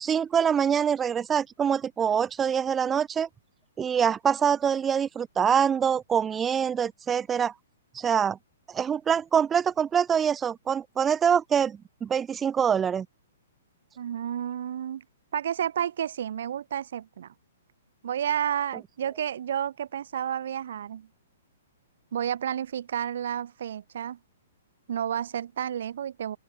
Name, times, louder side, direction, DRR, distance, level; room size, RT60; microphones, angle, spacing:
voice 1, 0.0-3.3 3.8-7.5 7.9-8.4 8.7-13.1, right 7 dB, 15° right, 3.4 m, -25 dB
voice 2, 14.0-15.0 15.3-17.3 18.0-21.1 22.1-24.2 24.9-26.4, right 9 dB, 60° right, 5.9 m, -31 dB
open air
figure-of-eight pair, 120°, 0 cm